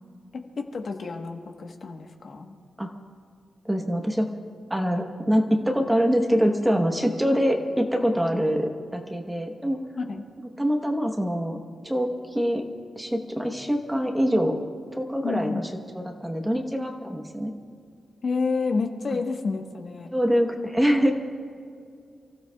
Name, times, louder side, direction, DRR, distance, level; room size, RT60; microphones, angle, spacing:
voice 1, 0.3-2.5 8.6-8.7 10.0-10.2 15.2-15.7 18.2-20.1, left 4 dB, 45° left, 3 dB, 1.2 m, -30 dB
voice 2, 3.6-4.3 4.7-9.8 10.4-11.6 11.8-12.6 13.0-14.6 14.9-15.7 15.9-17.5 19.1-19.2 20.1-21.1, equal, 5° right, 3 dB, 1.0 m, -24 dB
29.0 x 16.0 x 2.3 m, 2.2 s
wide cardioid pair, 175°, 0 cm